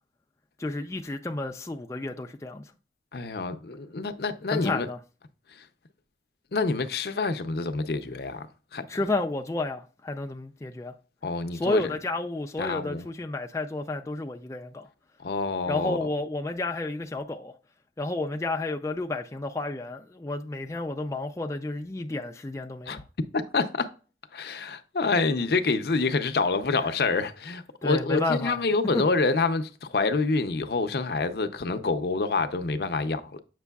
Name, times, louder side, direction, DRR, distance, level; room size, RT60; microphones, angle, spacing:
voice 1, 0.6-2.7 4.5-5.0 8.9-10.9 11.5-14.9 15.7-17.5 18.0-23.0 26.8-26.9 27.8-28.6 28.9-29.0, left 2 dB, 15° left, 0.3 m, -31 dB
voice 2, 3.1-4.9 5.6-5.7 6.5-8.5 8.7-8.8 11.2-11.8 12.6-13.1 15.2-16.1 22.9-23.0 23.3-23.9 24.3-33.4, left 3 dB, 60° left, 0.6 m, -27 dB
8.2 x 6.0 x 2.3 m
head